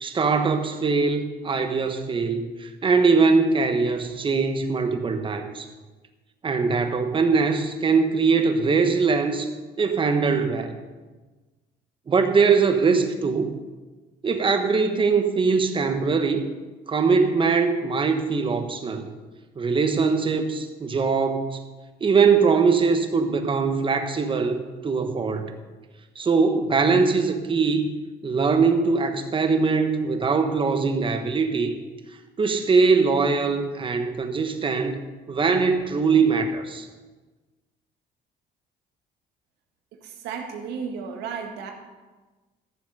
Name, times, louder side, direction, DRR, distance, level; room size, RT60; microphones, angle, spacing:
voice 1, 0.0-5.7 6.4-9.5 9.8-10.8 12.1-13.5 14.2-16.5 16.9-19.1 19.6-21.6 22.0-25.5 26.1-28.0 28.2-31.7 32.4-35.0 35.3-36.9, right 4 dB, 30° right, 7 dB, 1.3 m, -22 dB
voice 2, 40.0-41.7, right 6 dB, 90° right, 3 dB, 1.8 m, -33 dB
14.0 x 7.2 x 5.5 m, 1.3 s
cardioid pair, 110°, 17 cm